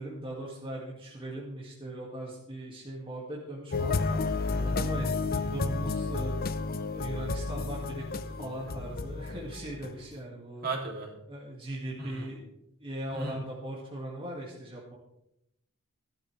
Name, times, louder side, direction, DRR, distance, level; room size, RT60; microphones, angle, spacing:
voice 1, 0.0-6.3 6.9-10.7 11.3-12.4 12.8-15.0, right 1 dB, 25° right, -4 dB, 2.3 m, -39 dB
sound 1, 3.7-10.1, left 3 dB, 45° left, 0.6 m, -31 dB
voice 2, 4.5-4.8 10.6-11.1 12.0-12.3 13.1-13.4, right 3 dB, 45° right, -1 dB, 3.1 m, -36 dB
15.5 x 12.0 x 3.4 m, 0.82 s
head